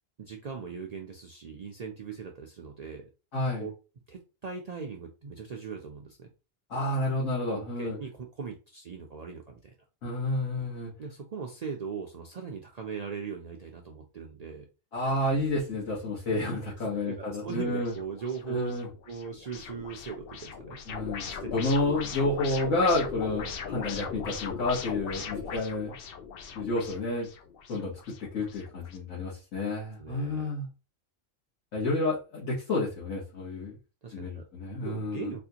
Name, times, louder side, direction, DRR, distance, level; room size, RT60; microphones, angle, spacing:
voice 1, 0.2-3.1 3.6-3.8 4.1-6.3 7.4-9.8 11.0-14.7 16.8-18.7 19.1-20.8 21.3-21.6 25.5-25.6 30.0-30.5 34.0-34.5 34.8-35.4, right 6 dB, 85° right, 2 dB, 0.3 m, -39 dB
voice 2, 3.3-3.7 6.7-8.0 10.0-10.9 14.9-17.9 18.5-18.9 20.9-21.2 21.5-25.9 26.5-27.3 27.7-27.9 28.2-30.7 31.7-33.7 34.1-35.3, left 2 dB, 80° left, -7 dB, 1.7 m, -30 dB
sound 1, 17.5-29.0, left 6 dB, 60° left, 0.7 m, -40 dB
4.3 x 2.5 x 2.8 m, 0.32 s
omnidirectional pair, 1.3 m